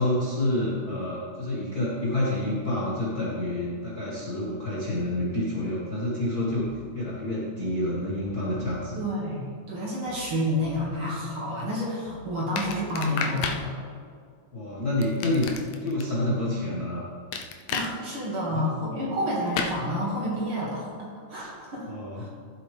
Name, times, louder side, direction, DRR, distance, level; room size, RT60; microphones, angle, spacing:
voice 1, 0.0-6.7 6.9-9.0 14.5-15.5 15.8-17.0 18.5-18.7 21.9-22.2, left 1 dB, 40° left, -8 dB, 1.5 m, -28 dB
sound 1, 6.5-6.9 8.1-8.9 10.1-10.9 12.1-12.9, left 2 dB, 85° right, 3.4 m, -47 dB
voice 2, 9.0-13.7 17.7-22.3, equal, 45° right, -5 dB, 2.6 m, -30 dB
sound 2, 12.6-13.6 15.0-16.0 17.3-17.9 19.5-19.8, left 6 dB, 75° left, 1.9 m, -30 dB
14.5 x 7.8 x 3.4 m, 2.1 s
omnidirectional pair, 3.6 m